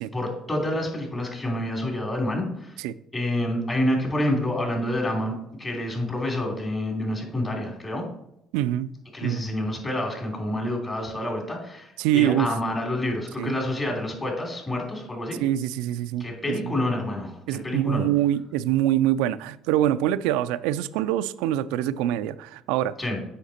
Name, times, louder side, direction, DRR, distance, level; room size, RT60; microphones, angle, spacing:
voice 1, 0.1-2.8 3.1-5.3 5.6-8.1 9.1-15.4 16.2-17.4 17.6-18.1 23.0-23.2, left 1 dB, 25° left, 3.2 m, -28 dB
voice 2, 8.5-8.9 9.2-9.4 12.0-12.5 13.4-13.5 15.4-16.7 17.5-23.0, right 12 dB, 90° right, 0.3 m, -24 dB
8.2 x 5.7 x 4.3 m
supercardioid pair, 85°, 0 cm